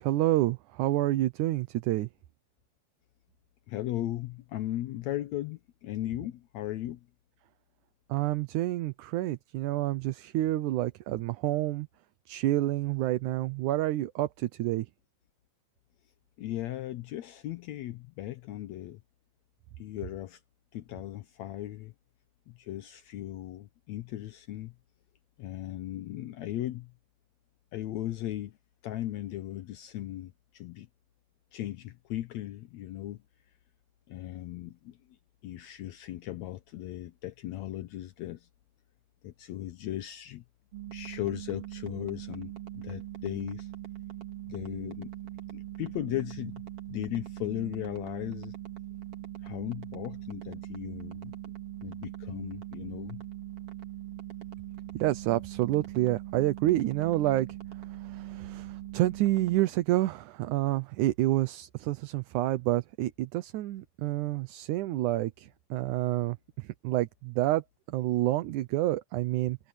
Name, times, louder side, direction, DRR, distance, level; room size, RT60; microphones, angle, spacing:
voice 1, 0.0-2.1 8.1-11.9 12.3-14.9 55.0-57.5 58.0-67.6 67.9-69.6, right 15 dB, 75° right, 2.2 m, -28 dB
voice 2, 3.7-7.1 16.4-19.0 19.8-20.4 20.7-21.9 22.5-24.7 25.4-26.9 27.7-28.6 28.8-30.9 31.5-33.2 34.1-35.0 35.4-38.5 39.2-40.4 40.9-43.7 44.5-45.1 45.5-46.6 46.9-48.5 49.4-51.4 51.8-53.2, left 14 dB, 75° left, 1.7 m, -37 dB
sound 1, 40.7-59.7, right 13 dB, 45° right, 3.6 m, -41 dB
omnidirectional pair, 3.8 m